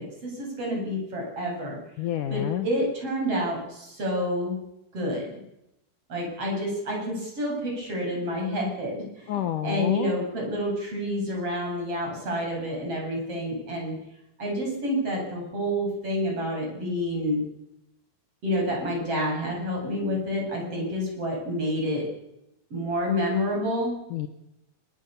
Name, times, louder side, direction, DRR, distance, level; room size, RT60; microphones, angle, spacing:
voice 1, 0.0-1.8 2.3-4.6 4.9-5.4 6.1-14.0 14.4-17.4 18.4-22.0 22.7-23.9, equal, 35° right, 0 dB, 9.1 m, -29 dB
voice 2, 2.0-2.7 9.3-10.1 24.1-24.3, left 11 dB, 65° left, 9 dB, 2.3 m, -29 dB
24.0 x 23.5 x 7.1 m, 0.87 s
omnidirectional pair, 4.5 m